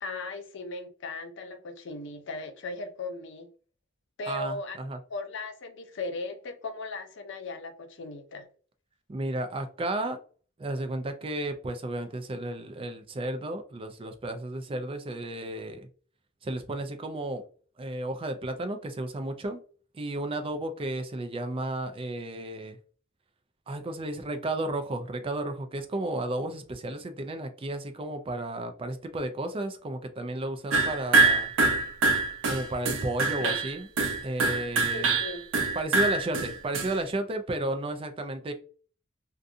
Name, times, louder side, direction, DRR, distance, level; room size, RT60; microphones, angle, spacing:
voice 1, 0.0-3.5 4.2-4.8 5.1-8.5 33.4-33.6 34.9-35.4, left 3 dB, 65° left, 0.5 m, -37 dB
voice 2, 4.3-5.0 9.1-10.2 10.6-15.9 16.4-17.4 17.8-19.6 19.9-22.8 23.7-31.5 32.4-33.9 34.2-35.2 35.7-38.5, right 1 dB, 30° right, 0.4 m, -33 dB
sound 1, 30.7-37.0, right 3 dB, 90° right, 0.6 m, -25 dB
2.5 x 2.3 x 2.6 m
head